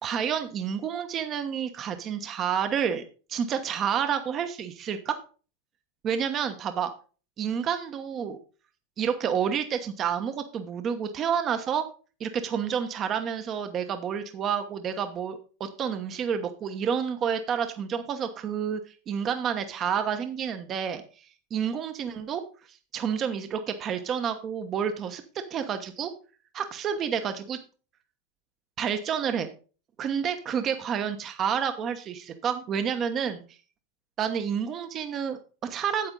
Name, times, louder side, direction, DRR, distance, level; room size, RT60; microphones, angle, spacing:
voice 1, 0.0-3.0 3.3-5.2 6.0-6.9 7.4-8.4 9.0-11.8 12.2-18.8 19.1-22.4 22.7-25.2 25.5-26.1 26.5-27.6 28.8-29.5 30.0-33.4 34.2-36.1, right 7 dB, 35° right, 8 dB, 1.0 m, -29 dB
8.7 x 7.9 x 3.8 m, 0.36 s
hypercardioid pair, 100°, 0 cm